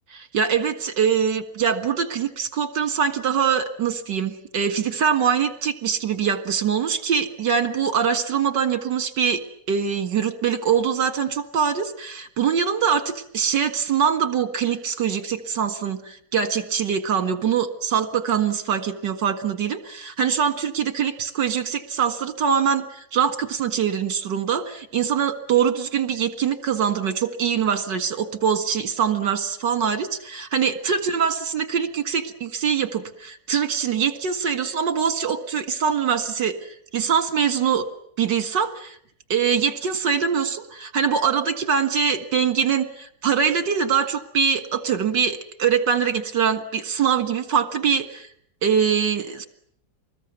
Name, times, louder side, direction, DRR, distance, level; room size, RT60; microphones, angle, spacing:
voice 1, 0.1-9.4 9.7-13.0 13.3-37.8 38.2-39.0 39.3-48.3 48.6-49.5, right 7 dB, 70° right, 10 dB, 2.5 m, -23 dB
25.0 x 20.5 x 9.5 m, 0.67 s
omnidirectional pair, 2.0 m